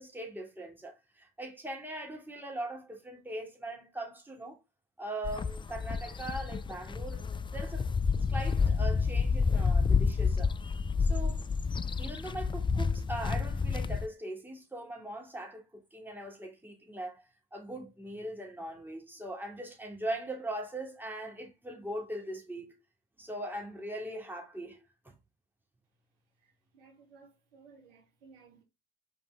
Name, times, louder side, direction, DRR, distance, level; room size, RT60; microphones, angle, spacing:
voice 1, 0.0-4.6 5.0-7.2 7.5-7.9 8.1-10.5 11.0-11.5 12.0-22.8 23.2-25.1, right 1 dB, 5° right, 3.0 m, -40 dB
sound 1, 5.2-14.1, left 5 dB, 15° left, 0.4 m, -29 dB
voice 2, 26.4-28.6, right 4 dB, 75° right, 1.6 m, -58 dB
5.6 x 5.2 x 3.6 m
figure-of-eight pair, 50°, 29 cm